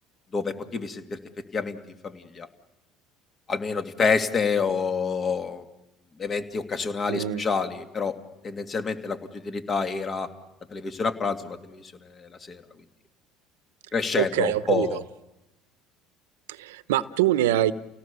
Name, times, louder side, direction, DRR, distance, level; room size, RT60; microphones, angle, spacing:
voice 1, 0.3-1.2 1.5-1.8 2.0-2.5 3.5-5.6 6.2-8.2 8.4-10.3 10.7-12.6 13.9-15.0, left 5 dB, 35° left, 7 dB, 2.3 m, -28 dB
voice 2, 7.1-7.5 14.2-15.0 16.5-17.7, right 13 dB, 90° right, 15 dB, 0.9 m, -24 dB
30.0 x 18.0 x 6.9 m, 0.97 s
supercardioid pair, 90°, 0 cm